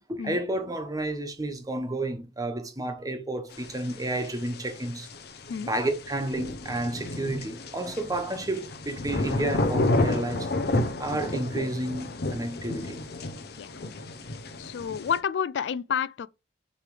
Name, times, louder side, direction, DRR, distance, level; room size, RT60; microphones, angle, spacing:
voice 1, 0.1-5.1 5.7-13.0, right 1 dB, 20° right, 1.2 m, -31 dB
sound 1, 3.5-15.2, left 2 dB, 65° left, 0.8 m, -31 dB
voice 2, 14.6-16.3, left 7 dB, 80° left, 0.3 m, -29 dB
6.8 x 3.3 x 4.9 m
head